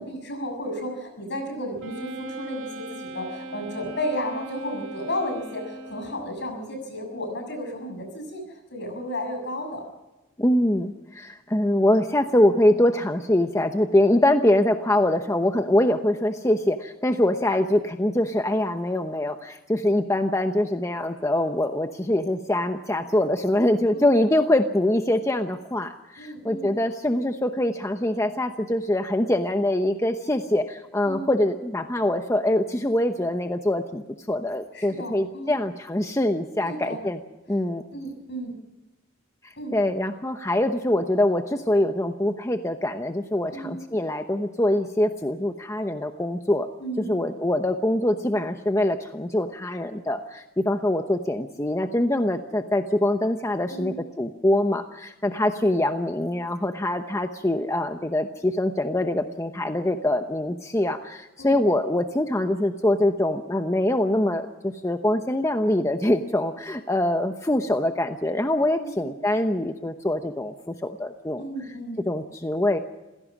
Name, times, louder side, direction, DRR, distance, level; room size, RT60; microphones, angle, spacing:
voice 1, 0.0-9.8 23.9-24.2 26.2-26.7 31.1-31.3 34.7-35.6 36.6-37.0 37.9-38.5 39.6-39.7 43.5-43.8 46.8-47.2 53.7-54.1 61.4-61.7 68.8-69.0 71.4-72.0, equal, 60° left, 5 dB, 6.9 m, -33 dB
Wind instrument woodwind instrument, 1.8-6.4, right 2 dB, 85° right, 2.6 m, -39 dB
voice 2, 10.4-34.0 34.3-37.2 37.5-37.8 39.4-46.7 47.0-71.4 72.1-72.8, left 1 dB, 15° left, 6 dB, 0.9 m, -24 dB
27.5 x 16.5 x 6.1 m, 1.1 s
head